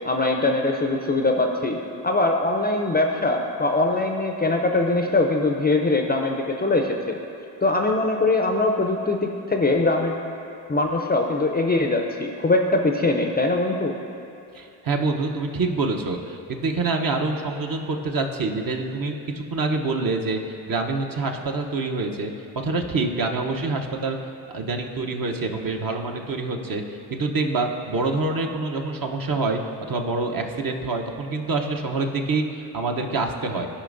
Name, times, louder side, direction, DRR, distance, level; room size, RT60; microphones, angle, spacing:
voice 1, 0.1-1.8 2.0-7.2 7.6-10.2 10.7-14.0, left 2 dB, 20° left, 3 dB, 0.5 m, -22 dB
voice 2, 14.5-22.3 22.6-24.2 24.5-29.6 29.9-33.7, right 3 dB, 45° right, 3 dB, 0.8 m, -26 dB
13.0 x 5.1 x 2.6 m, 2.6 s
hypercardioid pair, 45°, 48 cm